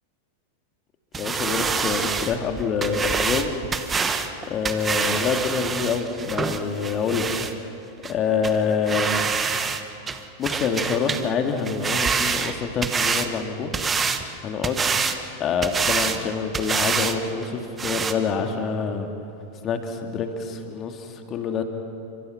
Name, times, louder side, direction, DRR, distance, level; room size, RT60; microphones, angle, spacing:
sound 1, 1.1-7.5 8.0-8.1 8.4-8.6 8.9-9.8 10.1-11.3 11.6-13.3 13.7-14.2 14.6-15.2 15.6-16.2 16.5-17.2 17.4-17.5 17.8-18.1, right 5 dB, 20° right, 1.2 m, -26 dB
voice 1, 1.2-3.6 4.4-7.3 8.1-9.4 10.4-13.7 14.4-14.9 15.4-19.1 19.6-21.6, left 5 dB, 30° left, 5 dB, 2.4 m, -26 dB
30.0 x 25.0 x 5.9 m, 2.7 s
figure-of-eight pair, 90°, 0 cm